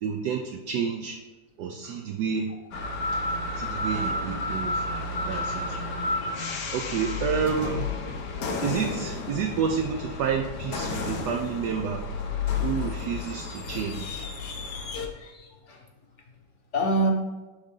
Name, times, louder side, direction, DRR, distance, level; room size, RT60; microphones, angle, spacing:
voice 1, 0.0-1.2 1.6-2.5 3.6-5.8 6.7-7.9 8.6-12.0 12.6-14.3, right 6 dB, 75° right, 3 dB, 1.2 m, -30 dB
sound 1, 2.7-15.1, left 3 dB, 65° left, 1.4 m, -31 dB
voice 2, 14.7-15.8 16.7-17.1, right 1 dB, 45° left, 1 dB, 1.3 m, -28 dB
11.5 x 3.9 x 3.7 m, 1.2 s
omnidirectional pair, 1.9 m